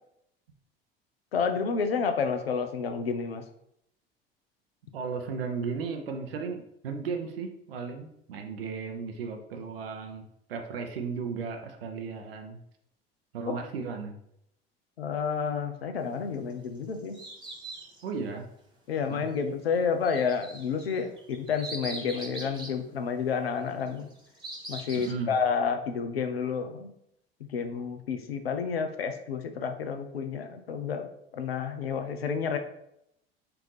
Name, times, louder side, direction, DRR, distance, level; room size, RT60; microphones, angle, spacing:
voice 1, 1.3-3.4 13.5-13.6 15.0-17.2 18.9-24.1 24.7-26.9 27.4-31.1 31.3-32.6, left 6 dB, 80° left, 7 dB, 0.5 m, -30 dB
voice 2, 4.9-12.6 13.3-14.1 18.0-18.5 19.0-19.3 24.9-25.3, right 5 dB, 70° right, 4 dB, 0.6 m, -35 dB
sound 1, 16.5-18.1 20.0-22.8 23.9-25.1, right 2 dB, 15° right, 1.1 m, -41 dB
4.5 x 2.5 x 3.1 m, 0.76 s
figure-of-eight pair, 65°, 30 cm